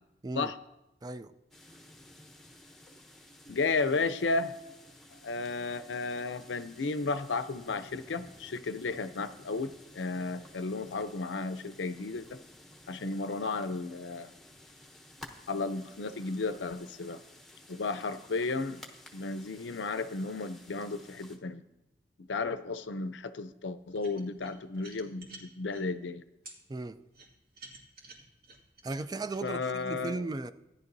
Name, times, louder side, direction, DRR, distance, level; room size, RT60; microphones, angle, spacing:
sound 1, 1.5-21.4, left 1 dB, ahead, 1.0 m, -54 dB
voice 1, 3.5-4.5 5.2-12.4 12.9-14.3 15.5-17.2 17.7-18.8 19.1-21.6 22.3-26.2 29.4-30.2, left 3 dB, 90° left, 0.6 m, -33 dB
sound 2, 23.9-25.8 26.4-26.6 27.1-29.5, right 3 dB, 55° right, 2.1 m, -51 dB
voice 2, 28.8-30.5, right 3 dB, 20° right, 0.3 m, -36 dB
16.5 x 10.5 x 2.7 m
head